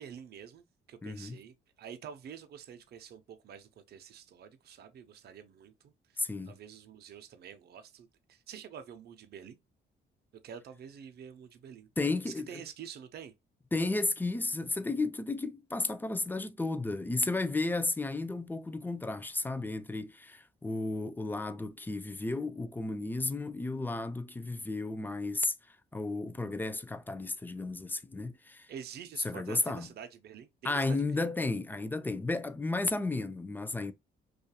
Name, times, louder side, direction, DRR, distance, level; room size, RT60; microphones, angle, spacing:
voice 1, 0.0-9.6 10.4-11.9 12.3-13.3 28.7-31.3, right 8 dB, 55° right, 0.5 m, -48 dB
voice 2, 1.0-1.4 6.2-6.6 12.0-12.6 13.7-25.5 25.9-28.7 29.2-29.9 30.6-33.9, left 2 dB, 10° left, 0.3 m, -33 dB
2.7 x 2.4 x 2.2 m
cardioid pair, 90°, 20 cm